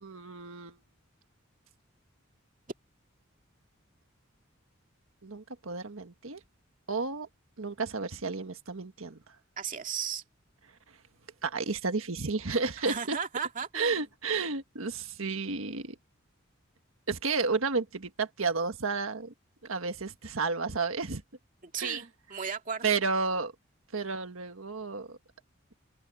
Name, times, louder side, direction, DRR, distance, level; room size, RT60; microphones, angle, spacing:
voice 1, 0.0-0.8 5.2-6.4 6.9-7.3 7.6-9.2 11.4-13.2 13.7-16.0 17.1-19.3 19.6-21.2 21.8-22.0 22.8-23.5 23.9-25.2, right 4 dB, 75° right, 1.5 m, -32 dB
voice 2, 9.6-10.2 12.8-14.1 21.6-22.8, right 6 dB, 40° right, 2.3 m, -35 dB
open air
head